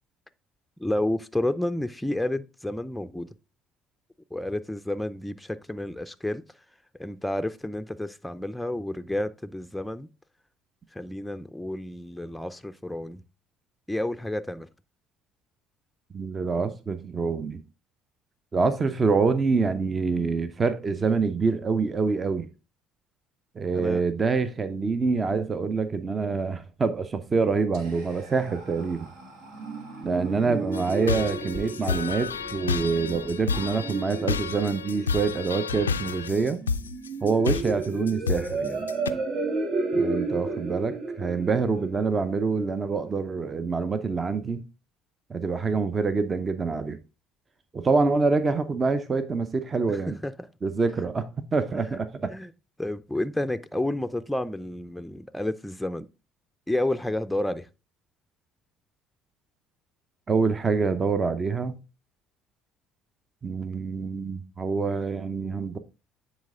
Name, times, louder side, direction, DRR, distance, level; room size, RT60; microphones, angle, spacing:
voice 1, 0.8-3.3 4.3-6.4 7.0-10.1 10.9-13.2 13.9-14.7 23.7-24.0 49.9-50.3 52.3-52.5 52.8-56.1 56.7-57.7, left 1 dB, 5° left, 0.5 m, -30 dB
voice 2, 16.1-17.6 18.5-22.5 23.6-29.1 30.0-36.6 37.2-38.8 39.9-44.6 45.3-47.0 47.7-50.2 50.6-52.3 60.3-61.8 63.4-65.8, right 4 dB, 30° right, 0.8 m, -26 dB
Whispering, 27.7-34.2, right 2 dB, 70° right, 1.5 m, -47 dB
sound 1, 29.2-43.1, right 3 dB, 55° right, 1.7 m, -33 dB
sound 2, 30.7-39.1, left 5 dB, 90° left, 0.3 m, -30 dB
9.4 x 4.3 x 3.6 m
hypercardioid pair, 55°, 0 cm